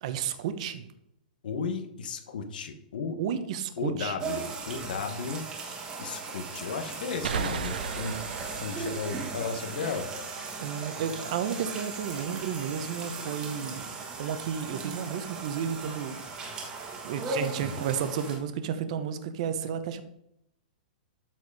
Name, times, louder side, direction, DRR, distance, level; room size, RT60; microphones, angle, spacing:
voice 1, 0.0-0.9 3.2-4.1 10.6-16.6 17.0-20.0, right 8 dB, 45° right, 10 dB, 0.9 m, -32 dB
voice 2, 1.4-3.2 3.8-5.4 6.0-8.2 8.6-10.1, left 5 dB, 70° left, 7 dB, 1.2 m, -34 dB
sound 1, 4.2-18.4, right 4 dB, 15° right, 1.5 m, -37 dB
sound 2, 7.2-10.7, right 7 dB, 90° right, 0.7 m, -36 dB
13.0 x 4.7 x 4.8 m, 0.80 s
hypercardioid pair, 170°, 5 cm